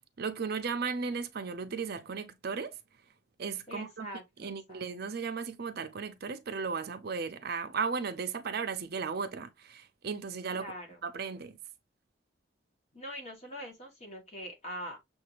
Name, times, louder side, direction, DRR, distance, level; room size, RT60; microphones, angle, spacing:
voice 1, 0.2-2.8 3.4-4.1 4.4-10.7 11.0-11.5, right 5 dB, 55° right, 0.5 m, -35 dB
voice 2, 3.7-4.8 10.5-11.0 12.9-15.0, equal, 35° left, 1.6 m, -43 dB
6.6 x 2.6 x 2.9 m
head